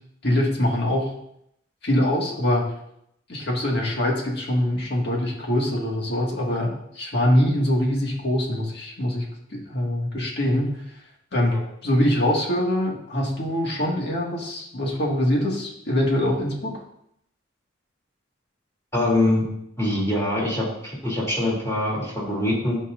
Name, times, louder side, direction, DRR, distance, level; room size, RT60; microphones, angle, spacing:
voice 1, 0.2-1.1 1.8-2.7 3.3-9.3 9.5-10.7 11.3-11.5 11.8-16.7, left 1 dB, 55° left, -1 dB, 2.0 m, -23 dB
voice 2, 18.9-19.4 19.8-22.8, left 1 dB, 15° left, -5 dB, 3.1 m, -24 dB
12.5 x 5.6 x 2.6 m, 0.74 s
head